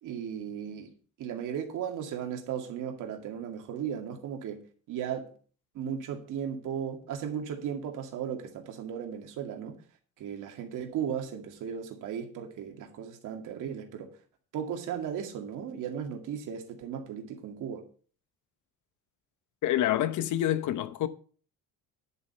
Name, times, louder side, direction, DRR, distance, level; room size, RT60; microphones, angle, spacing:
voice 1, 0.0-0.9 1.2-4.6 4.9-5.3 5.7-9.8 10.2-14.1 14.5-17.8, right 8 dB, 65° right, 2.3 m, -36 dB
voice 2, 19.6-21.1, left 12 dB, 60° left, 1.0 m, -27 dB
11.0 x 7.3 x 5.8 m
cardioid pair, 175°, 33 cm